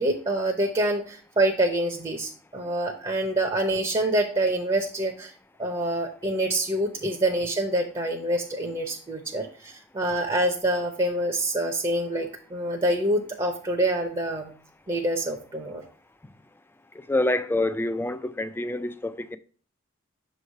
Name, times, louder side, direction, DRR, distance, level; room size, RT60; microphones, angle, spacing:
voice 1, 0.0-5.3 5.6-14.5 14.9-15.8, right 1 dB, 25° right, 0.7 m, -26 dB
voice 2, 17.1-19.4, left 2 dB, 10° left, 0.3 m, -26 dB
6.4 x 3.2 x 5.3 m
head